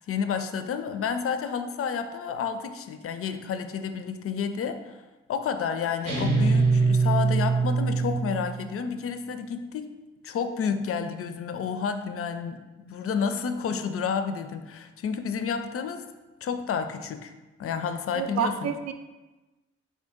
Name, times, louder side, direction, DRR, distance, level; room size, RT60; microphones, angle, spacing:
voice 1, 0.0-5.0 5.3-10.0 10.2-16.0 16.4-17.3 17.6-18.7, left 6 dB, 50° left, 9 dB, 0.4 m, -30 dB
sound 1, 6.1-8.6, right 4 dB, 80° right, 0.9 m, -23 dB
voice 2, 18.1-18.9, right 7 dB, 60° right, 8 dB, 0.4 m, -28 dB
3.6 x 2.6 x 3.6 m, 1.1 s
supercardioid pair, 45°, 30 cm